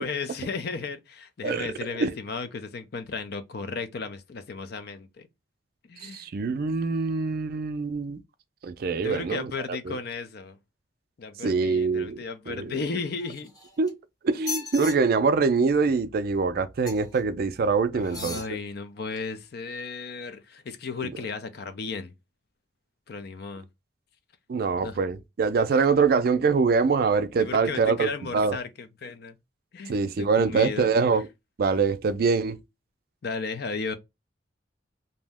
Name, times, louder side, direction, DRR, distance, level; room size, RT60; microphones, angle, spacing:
voice 1, 0.0-5.3 5.9-6.3 9.0-10.6 11.2-13.5 17.9-22.1 23.1-23.6 24.8-25.0 27.4-29.4 29.7-30.9 33.2-34.0, left 4 dB, 60° left, 0.5 m, -34 dB
voice 2, 1.4-2.1 6.0-8.2 8.6-10.0 11.4-12.8 13.8-14.0 14.2-18.6 21.0-21.1 24.5-28.6 29.9-31.3 31.6-32.6, right 4 dB, 55° right, 0.4 m, -24 dB
sound 1, 13.2-13.9 14.3-14.9 16.8-17.2 18.0-18.5 19.2-19.3, left 3 dB, 20° left, 1.0 m, -36 dB
2.7 x 2.1 x 3.4 m
head